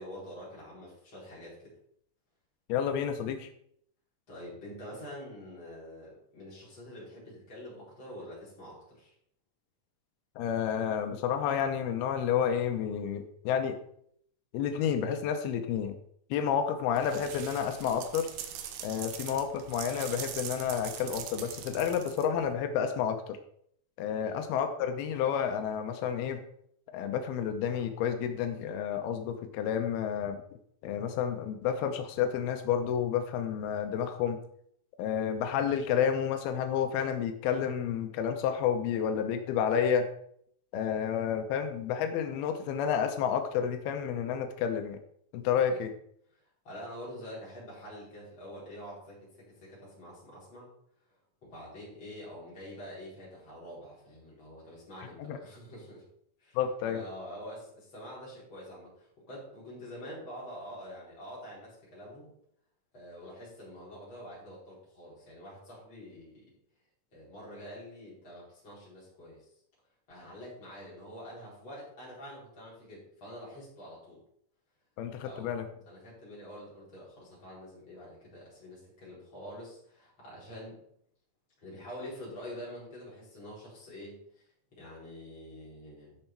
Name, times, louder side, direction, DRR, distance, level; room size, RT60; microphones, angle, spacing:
voice 1, 0.0-1.7 4.3-9.1 24.2-24.3 45.7-45.8 46.3-46.4 46.6-50.7 51.4-56.0 56.4-56.6 56.8-62.3 62.9-66.4 67.1-69.5 70.1-74.2 75.2-75.6 75.8-80.8 81.6-86.2, equal, 30° left, -7 dB, 5.0 m, -46 dB
voice 2, 2.7-3.5 10.4-13.8 14.5-16.0 16.3-18.3 18.8-23.4 24.0-26.4 26.9-30.4 30.8-34.4 35.0-40.1 40.7-45.0 45.3-45.9 55.2-55.4 56.6-57.0 75.0-75.7, left 8 dB, 90° left, 6 dB, 2.8 m, -30 dB
sound 1, 16.9-22.5, right 9 dB, 70° right, 2.2 m, -42 dB
12.5 x 5.6 x 4.5 m, 0.68 s
omnidirectional pair, 4.3 m